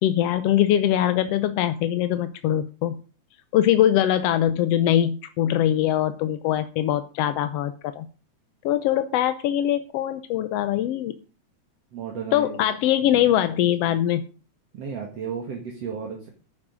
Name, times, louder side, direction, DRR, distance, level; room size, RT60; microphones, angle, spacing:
voice 1, 0.0-3.0 3.5-8.1 8.6-11.1 12.3-14.2, left 11 dB, 70° left, 10 dB, 1.6 m, -22 dB
voice 2, 11.9-12.6 13.0-14.0 14.7-16.3, right 6 dB, 55° right, 1 dB, 2.7 m, -35 dB
10.5 x 9.8 x 5.1 m, 0.35 s
omnidirectional pair, 3.5 m